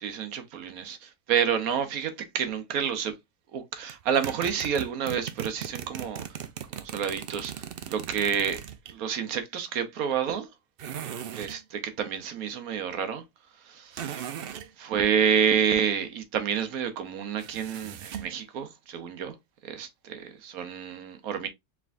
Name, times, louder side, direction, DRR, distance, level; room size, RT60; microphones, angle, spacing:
voice 1, 0.0-3.1 3.5-6.4 6.7-8.6 8.9-10.5 11.3-13.2 13.7-14.3 14.8-19.3 19.6-21.5, right 7 dB, 90° right, 1.3 m, -29 dB
sound 1, 3.9-8.9 10.8-11.6 13.9-14.7 17.4-18.4, right 9 dB, 60° right, 0.6 m, -38 dB
4.9 x 3.3 x 2.4 m
omnidirectional pair, 1.5 m